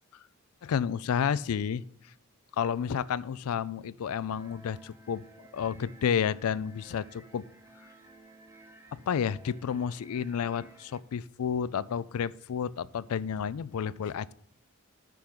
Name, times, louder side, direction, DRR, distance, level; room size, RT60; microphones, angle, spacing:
voice 1, 0.6-1.8 2.6-7.4 8.9-14.3, left 7 dB, 75° left, 18 dB, 0.4 m, -31 dB
sound 1, 4.3-11.0, right 2 dB, 10° right, 0.7 m, -55 dB
11.5 x 3.9 x 5.8 m, 0.64 s
head